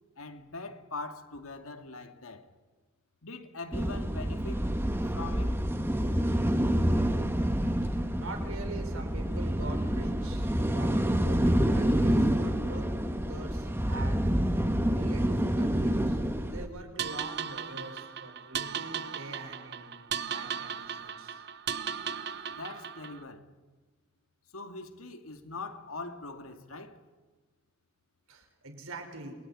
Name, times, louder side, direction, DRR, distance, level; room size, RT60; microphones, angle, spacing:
voice 1, 0.2-2.5 3.2-4.7 5.1-5.6 22.5-23.5 24.5-27.0, left 3 dB, 90° left, 2.3 m, -42 dB
sound 1, 3.7-16.7, equal, 10° right, 1.5 m, -28 dB
voice 2, 7.9-12.9 13.3-14.5 14.8-19.9 20.3-21.4 28.3-29.4, right 2 dB, 85° right, 5.3 m, -44 dB
sound 2, 17.0-23.2, right 8 dB, 50° right, 0.8 m, -37 dB
28.0 x 21.0 x 9.9 m
head